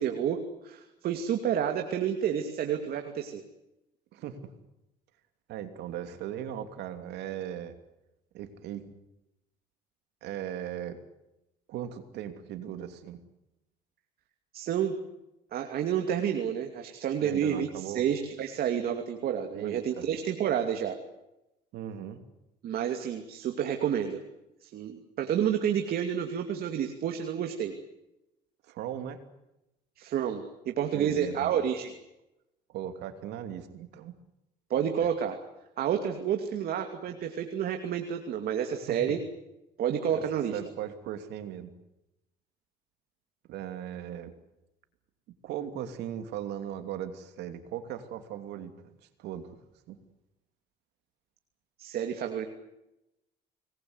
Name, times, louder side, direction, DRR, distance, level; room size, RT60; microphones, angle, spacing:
voice 1, 0.0-3.4 14.5-14.9 15.5-21.0 22.6-24.2 24.6-27.7 30.0-31.9 34.7-35.4 35.8-39.2 39.8-40.6 51.8-52.5, right 9 dB, 65° right, 5 dB, 2.7 m, -30 dB
voice 2, 4.1-4.5 5.5-7.8 8.3-8.8 10.2-11.0 11.7-13.2 17.2-18.0 19.5-20.1 21.7-22.2 28.6-29.2 30.9-31.5 32.7-34.1 35.0-35.1 38.9-39.2 40.1-40.2 40.5-41.7 43.5-44.3 45.4-49.5 49.9-50.0, right 10 dB, 80° right, 8 dB, 2.9 m, -38 dB
26.0 x 20.5 x 8.1 m, 0.93 s
cardioid pair, 110°, 17 cm